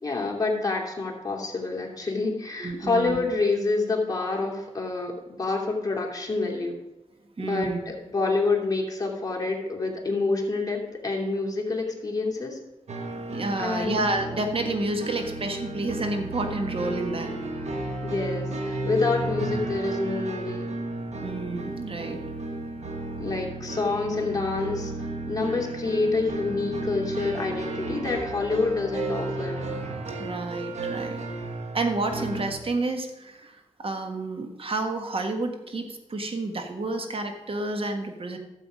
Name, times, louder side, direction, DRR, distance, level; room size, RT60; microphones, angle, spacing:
voice 1, 0.0-6.8 7.4-12.6 13.6-14.0 18.0-20.7 23.2-29.6, left 3 dB, 30° left, -2 dB, 2.8 m, -27 dB
voice 2, 2.6-3.2 7.4-7.8 13.3-17.3 21.2-22.2 30.2-31.2 31.7-38.4, right 2 dB, 50° right, 5 dB, 1.6 m, -30 dB
sound 1, 12.9-32.5, right 2 dB, 70° right, 1.4 m, -33 dB
12.5 x 7.4 x 5.1 m, 1.1 s
cardioid pair, 70°, 12 cm